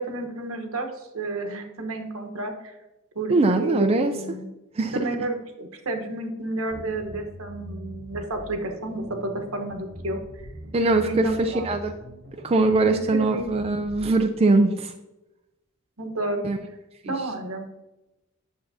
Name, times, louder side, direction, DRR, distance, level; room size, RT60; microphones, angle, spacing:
voice 1, 0.0-2.7 3.1-3.3 3.6-4.5 4.9-10.2 11.1-11.7 12.8-13.5 16.0-16.4 17.0-17.7, right 2 dB, 80° right, 5 dB, 1.1 m, -31 dB
voice 2, 3.3-4.1 4.8-5.1 10.7-11.9 12.4-14.9 16.4-16.6 17.0-17.1, right 2 dB, 30° right, 6 dB, 0.4 m, -21 dB
sound 1, 6.7-14.1, equal, 60° right, 2.6 m, -42 dB
8.7 x 6.8 x 2.7 m, 0.99 s
head